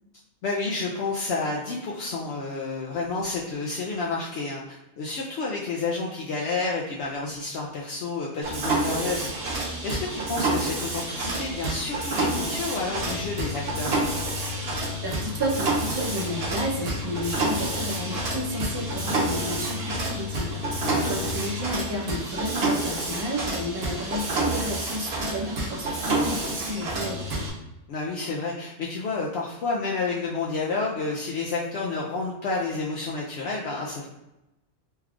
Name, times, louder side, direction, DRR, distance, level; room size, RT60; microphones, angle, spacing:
voice 1, 0.4-9.3 9.8-14.0 20.8-21.1 27.9-34.1, left 3 dB, 65° left, -3 dB, 0.8 m, -30 dB
Mechanisms, 8.4-27.5, right 1 dB, 60° right, 1.0 m, -28 dB
voice 2, 15.0-27.5, equal, 35° right, -2 dB, 0.4 m, -32 dB
3.2 x 2.3 x 3.5 m, 0.93 s
omnidirectional pair, 1.3 m